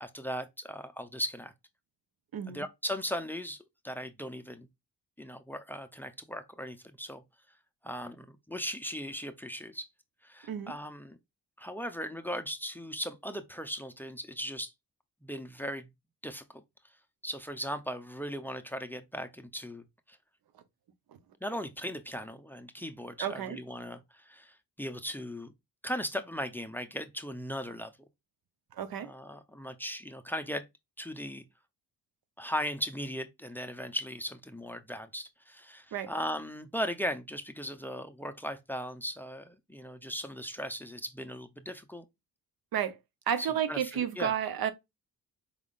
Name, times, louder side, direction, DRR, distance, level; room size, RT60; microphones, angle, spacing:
voice 1, 0.0-1.5 2.5-4.7 5.2-7.2 7.8-9.9 10.2-11.2 11.6-14.7 15.2-15.9 16.2-16.6 17.2-20.2 21.4-25.5 25.8-27.9 29.0-30.7 31.0-31.4 32.4-42.0 43.4-44.3, equal, 5° left, 0.6 m, -38 dB
voice 2, 2.3-2.6 10.5-10.7 23.2-23.6 28.7-29.1 35.9-36.1 42.7-43.0 43.3-44.7, right 9 dB, 75° right, 0.8 m, -31 dB
4.9 x 3.6 x 2.4 m
cardioid pair, 95°, 36 cm